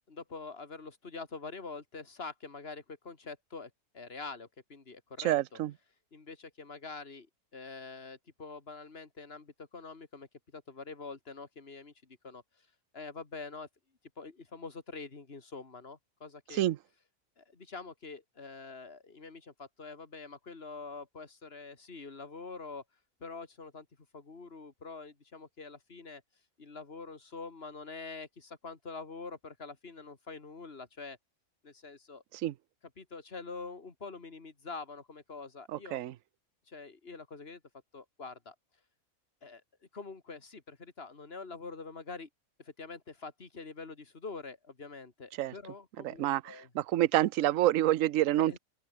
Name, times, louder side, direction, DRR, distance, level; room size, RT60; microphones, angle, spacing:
voice 1, 0.1-5.4 6.1-7.3 7.5-10.3 10.5-12.4 12.9-13.7 14.2-16.6 17.4-22.8 23.2-23.9 24.1-26.2 26.6-31.2 31.6-32.2 33.0-36.0 36.7-37.6 37.9-38.5 39.4-39.6 39.9-42.3 42.6-46.7 48.4-48.6, left 4 dB, 45° left, 2.6 m, -45 dB
voice 2, 5.2-5.7 16.5-16.8 32.3-32.5 35.7-36.1 45.4-45.5 46.0-48.6, right 14 dB, 70° right, 1.0 m, -28 dB
open air
omnidirectional pair, 1.5 m